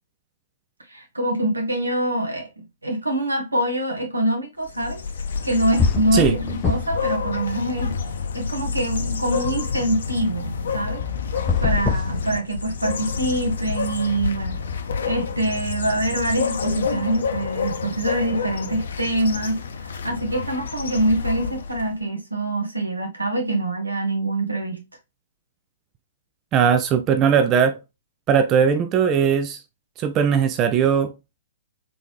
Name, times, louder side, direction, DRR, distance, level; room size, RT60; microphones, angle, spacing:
voice 1, 0.9-2.5 2.8-5.0 5.4-8.0 8.3-11.0 11.6-14.6 15.0-19.6 19.9-24.8, right 1 dB, 80° right, 1.3 m, -24 dB
sound 1, 4.6-21.9, left 5 dB, 60° left, 0.7 m, -29 dB
sound 2, 5.4-5.5 5.8-7.1 7.4-8.5 11.3-12.9, left 5 dB, 15° left, 0.6 m, -25 dB
voice 2, 26.5-27.8 28.3-29.6 30.0-31.1, right 7 dB, 25° right, 0.4 m, -19 dB
3.8 x 3.7 x 3.1 m
figure-of-eight pair, 115°, 0 cm